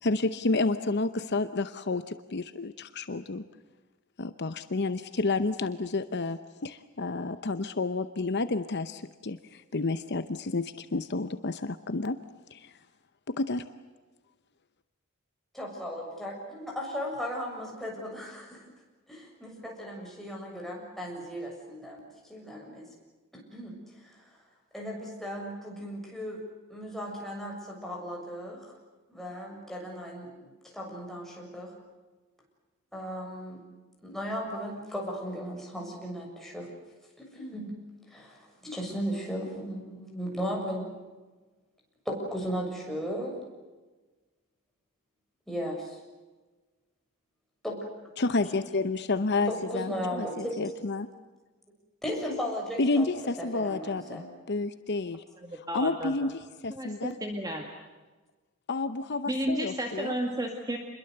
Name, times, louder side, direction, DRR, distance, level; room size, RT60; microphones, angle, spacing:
voice 1, 0.0-3.4 4.2-12.2 12.5-12.7 13.3-13.7 48.2-51.1 52.8-55.2 55.5-57.2 58.7-60.1, left 3 dB, 50° left, 11 dB, 0.8 m, -30 dB
voice 2, 15.5-18.6 19.1-22.0 22.3-22.9 23.3-23.8 24.0-24.2 24.7-26.4 26.7-28.7 29.1-31.7 32.9-33.6 34.0-36.7 37.2-37.7 38.1-40.9 42.1-43.4 45.5-46.0 47.6-47.8 48.4-48.5 49.5-50.6 52.0-53.1 53.4-54.3, equal, ahead, -2 dB, 7.0 m, -36 dB
voice 3, 55.4-56.3 56.7-57.7 59.3-60.8, right 1 dB, 15° right, 3 dB, 2.1 m, -32 dB
28.0 x 22.0 x 8.0 m, 1.3 s
head